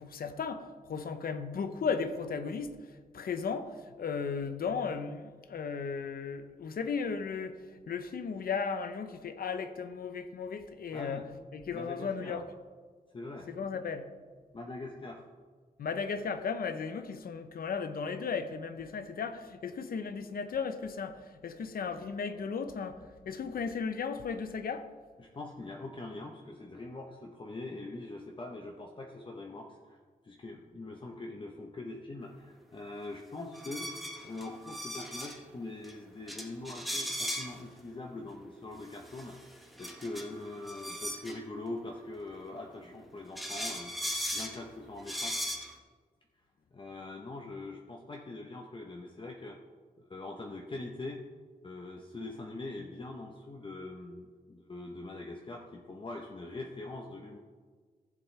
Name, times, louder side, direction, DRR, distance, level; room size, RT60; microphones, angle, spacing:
voice 1, 0.0-2.7 3.1-3.7 4.0-7.6 7.9-11.2 11.5-12.4 13.5-14.1 15.8-23.0 23.3-24.8, left 5 dB, 75° left, 9 dB, 0.8 m, -35 dB
voice 2, 10.9-11.2 11.7-12.5 13.1-13.5 14.5-15.3 25.2-30.0 30.2-33.9 34.2-39.4 39.8-45.3 46.7-49.6 50.0-51.3 51.6-57.4, left 2 dB, 35° left, 0 dB, 0.9 m, -43 dB
sound 1, 33.5-35.4 35.8-35.9 36.3-37.6 38.9-41.4 42.9-43.0 43.4-44.6 45.0-45.7, equal, ahead, 1.2 m, -38 dB
14.5 x 7.6 x 3.3 m, 1.6 s
wide cardioid pair, 100°, 15 cm